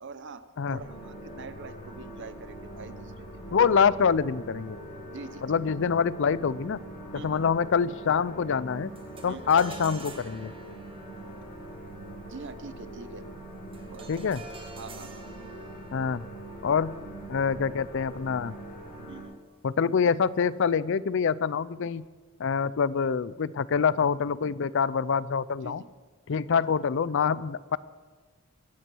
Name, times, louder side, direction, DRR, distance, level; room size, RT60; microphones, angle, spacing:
voice 1, 0.0-0.4 0.7-3.7 5.1-5.5 7.1-7.4 9.3-9.5 12.2-13.2 13.9-14.1 14.8-15.1 19.1-19.4 20.1-20.2 25.6-25.9 26.3-26.4, right 4 dB, 55° right, 12 dB, 0.8 m, -44 dB
sound 1, 0.7-19.2, right 1 dB, 45° left, 6.1 m, -43 dB
voice 2, 3.5-4.8 5.4-6.8 7.1-8.9 9.2-10.5 14.1-14.4 15.9-16.2 16.6-17.0 17.3-18.5 19.6-22.0 22.4-25.8 26.3-27.8, left 6 dB, 60° left, 19 dB, 0.4 m, -25 dB
sound 2, 9.0-18.4, right 3 dB, 25° right, 1.8 m, -49 dB
23.0 x 9.3 x 6.2 m, 1.4 s
head